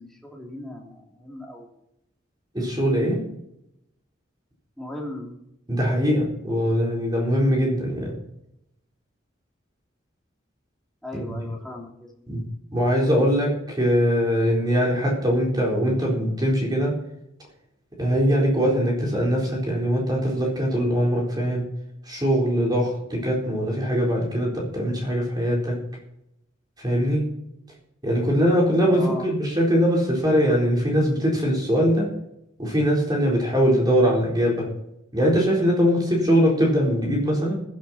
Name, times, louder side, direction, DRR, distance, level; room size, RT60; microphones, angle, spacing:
voice 1, 0.0-1.7 4.8-5.4 11.0-12.3 28.9-29.3, left 1 dB, ahead, -1 dB, 3.0 m, -37 dB
voice 2, 2.5-3.2 5.7-8.2 11.3-11.4 12.3-12.4 12.7-17.0 18.0-21.6 22.1-25.8 26.8-27.2 28.0-32.1 32.6-34.7 35.1-37.6, equal, 20° right, -2 dB, 4.0 m, -22 dB
15.0 x 10.5 x 4.3 m, 0.79 s
head